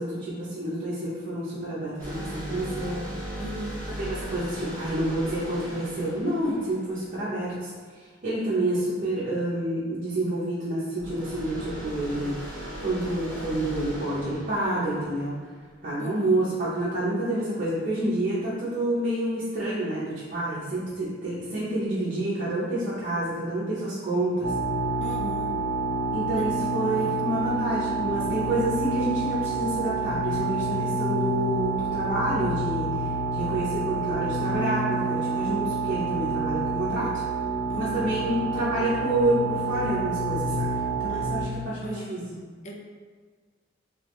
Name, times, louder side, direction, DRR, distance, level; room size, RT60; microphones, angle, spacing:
voice 1, 0.0-3.1 4.0-12.4 12.8-15.3 15.8-24.5 26.1-37.2 37.8-40.7 41.0-42.2, right 1 dB, 45° right, -9 dB, 0.8 m, -28 dB
sound 1, 2.0-7.5 11.0-15.7, equal, 15° left, 1.4 m, -38 dB
voice 2, 3.4-3.8 16.0-16.4 25.0-25.6 26.3-26.5 27.0-27.2 37.7-38.1 41.1-41.2 41.8-42.7, right 1 dB, 35° left, 0 dB, 0.5 m, -38 dB
sound 2, 24.4-41.4, right 3 dB, 80° left, 1.2 m, -28 dB
3.4 x 3.2 x 3.2 m, 1.5 s
head